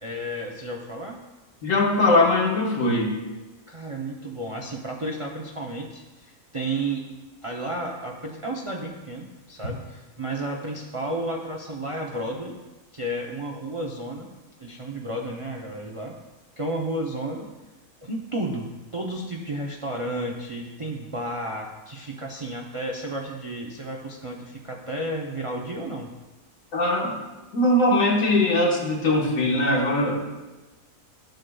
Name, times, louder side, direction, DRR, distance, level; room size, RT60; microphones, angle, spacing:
voice 1, 0.0-1.2 3.7-7.0 7.4-12.6 12.9-14.3 14.6-16.2 16.6-17.5 18.0-26.1, right 1 dB, 40° right, -1 dB, 0.4 m, -32 dB
voice 2, 1.6-3.1 26.7-27.2 27.5-30.2, left 1 dB, 65° left, -2 dB, 1.7 m, -21 dB
11.5 x 6.5 x 2.3 m, 1.1 s
omnidirectional pair, 1.5 m